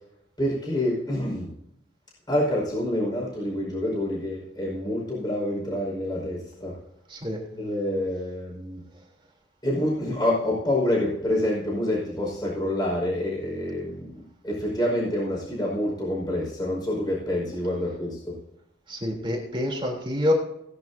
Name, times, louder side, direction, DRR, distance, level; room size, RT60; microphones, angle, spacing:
voice 1, 0.4-1.5 2.3-6.8 7.5-8.8 9.6-18.4, left 1 dB, 20° left, -4 dB, 5.2 m, -27 dB
voice 2, 7.1-7.4 18.9-20.3, left 1 dB, 25° right, -2 dB, 3.3 m, -27 dB
18.5 x 10.5 x 2.7 m, 0.80 s
head